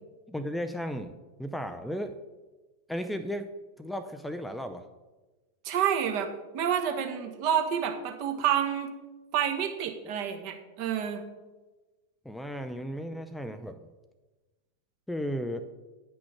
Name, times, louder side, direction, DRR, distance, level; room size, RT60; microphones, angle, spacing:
voice 1, 0.3-2.2 2.9-3.5 3.8-4.8 12.2-13.9 15.1-15.7, equal, 5° left, 8 dB, 0.5 m, -35 dB
voice 2, 5.6-6.3 6.5-8.9 9.3-11.2, right 9 dB, 45° right, 4 dB, 1.4 m, -28 dB
9.6 x 6.1 x 5.8 m, 1.2 s
figure-of-eight pair, 90°, 0 cm